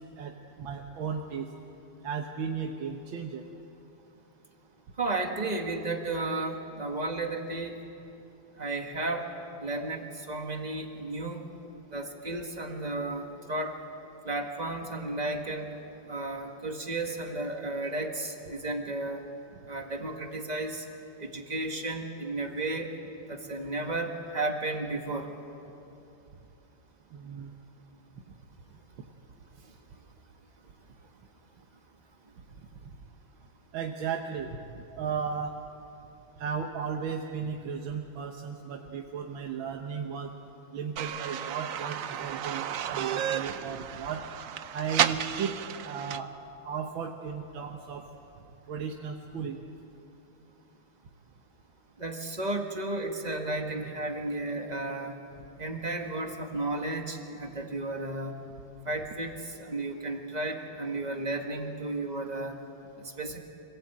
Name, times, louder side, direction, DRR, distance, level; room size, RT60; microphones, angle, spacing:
voice 1, 0.2-1.5 2.0-3.4 27.1-27.5 33.7-34.7 35.0-35.6 36.4-40.3 40.7-44.2 44.7-45.6 45.8-46.3 46.6-48.0 48.7-49.6, right 6 dB, 85° right, 2 dB, 1.9 m, -35 dB
voice 2, 5.0-7.8 8.6-9.3 9.6-11.5 11.9-13.8 14.2-15.8 16.1-19.2 19.7-20.9 21.2-22.9 23.3-25.3 52.0-55.2 55.6-58.4 58.9-62.6 63.0-63.4, right 2 dB, 20° right, 3 dB, 1.7 m, -33 dB
sound 1, 41.0-46.2, right 9 dB, 65° right, 0.8 m, -32 dB
25.5 x 17.0 x 8.7 m, 2.8 s
omnidirectional pair, 2.1 m